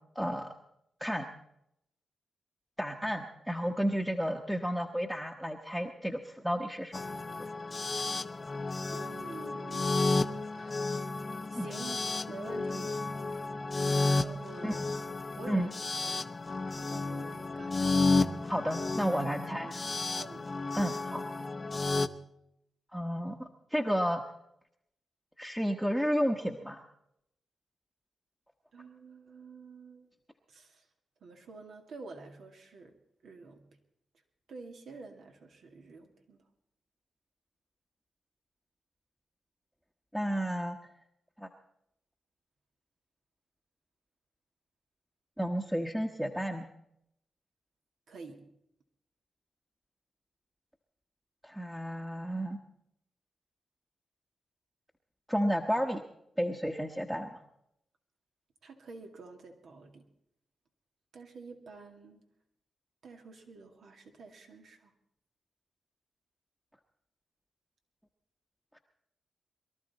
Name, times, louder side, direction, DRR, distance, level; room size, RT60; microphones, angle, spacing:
voice 1, 0.1-0.5 1.0-1.3 2.8-7.0 11.6-11.7 14.6-14.7 15.5-15.7 18.4-19.7 20.7-21.3 22.9-24.2 25.4-26.8 40.1-40.8 41.4-41.5 45.4-46.7 51.4-52.6 55.3-56.0 56.4-57.4, equal, 5° right, 2 dB, 1.2 m, -32 dB
sound 1, 6.9-22.1, left 3 dB, 40° left, 0.7 m, -32 dB
voice 2, 8.9-10.1 10.6-10.9 11.5-13.1 14.1-14.8 15.4-15.7 16.1-16.3 16.7-18.4 19.0-19.2 19.5-20.5 28.7-30.1 30.5-30.9 31.2-33.0 33.2-33.7 34.5-36.4 48.1-48.5 58.6-60.1 61.1-62.2 63.0-64.9, right 4 dB, 75° right, 3 dB, 2.1 m, -48 dB
22.5 x 13.0 x 4.2 m, 0.78 s
cardioid pair, 60°, 0 cm